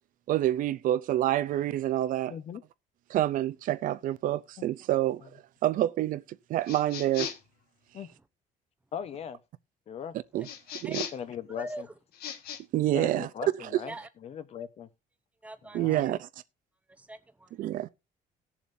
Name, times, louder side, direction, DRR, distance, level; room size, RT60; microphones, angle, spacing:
voice 1, 0.3-2.4 3.1-5.2 5.6-7.3 10.3-10.5 10.8-11.0 12.7-13.3 13.5-13.8 15.7-16.3 17.6-17.9, right 13 dB, 60° right, 0.6 m, -27 dB
voice 2, 2.3-2.6 4.6-4.7 7.9-8.1 8.9-9.4 9.9-10.1 11.1-11.8 12.9-13.9 14.2-14.9 15.7-16.1, left 7 dB, 40° left, 1.0 m, -38 dB
sound 1, 6.6-7.5 10.4-11.3 12.1-12.6, left 9 dB, 80° left, 1.7 m, -38 dB
voice 3, 11.6-11.9 13.9-14.1 15.4-16.2 16.9-17.6, right 1 dB, 10° right, 0.8 m, -42 dB
18.5 x 7.2 x 2.7 m
cardioid pair, 180°, 16 cm